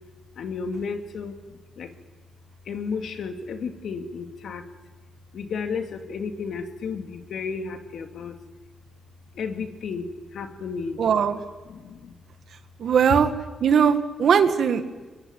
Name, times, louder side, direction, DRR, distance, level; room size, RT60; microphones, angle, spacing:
voice 1, 0.4-1.9 2.7-4.6 5.3-8.4 9.3-11.0 11.7-12.1, left 5 dB, 70° left, 6 dB, 2.5 m, -33 dB
voice 2, 11.0-11.4 12.8-13.3 13.6-14.9, right 7 dB, 65° right, 9 dB, 1.9 m, -20 dB
23.0 x 21.5 x 9.5 m, 1.3 s
cardioid pair, 95°, 0 cm